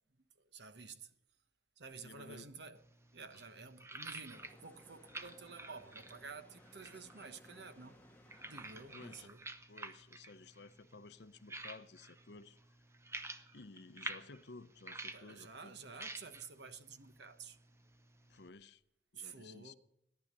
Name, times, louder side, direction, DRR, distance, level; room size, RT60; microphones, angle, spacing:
voice 1, 0.1-1.1 1.8-2.8 3.1-8.1 8.5-9.4 15.1-17.6 19.1-19.7, right 4 dB, 60° right, 1.1 m, -51 dB
voice 2, 2.0-2.5 8.9-9.3 9.7-12.6 13.5-15.8 18.3-18.8 19.1-19.7, left 3 dB, 60° left, 0.7 m, -54 dB
sound 1, 2.8-18.5, right 2 dB, 15° right, 0.8 m, -51 dB
sound 2, 4.3-9.3, left 1 dB, 10° left, 1.1 m, -62 dB
18.0 x 11.0 x 6.7 m
head